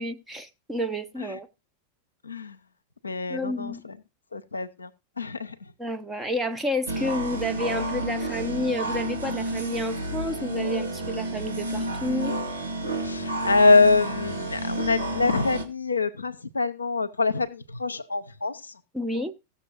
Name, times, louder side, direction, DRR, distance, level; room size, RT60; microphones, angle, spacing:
voice 1, 0.0-1.5 3.3-3.8 5.8-12.3 18.9-19.3, equal, 10° right, 0.9 m, -30 dB
voice 2, 2.2-2.6 3.0-4.0 4.3-4.9 5.2-5.7 13.0-18.8, left 3 dB, 80° left, 0.6 m, -24 dB
sound 1, 6.9-15.6, right 1 dB, 80° right, 1.5 m, -30 dB
16.5 x 6.7 x 2.9 m
figure-of-eight pair, 90°, 0 cm